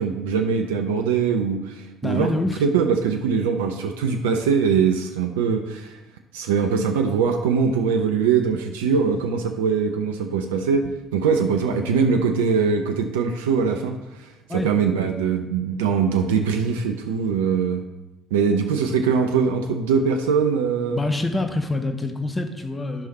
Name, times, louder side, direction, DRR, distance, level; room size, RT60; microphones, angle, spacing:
voice 1, 0.0-2.3 2.6-6.0 6.3-17.8 18.3-21.0, right 6 dB, 75° right, 4 dB, 0.6 m, -22 dB
voice 2, 2.0-2.6 14.5-14.7 20.9-23.1, left 2 dB, 20° left, 6 dB, 1.2 m, -26 dB
11.5 x 5.7 x 4.2 m, 0.96 s
figure-of-eight pair, 50°, 0 cm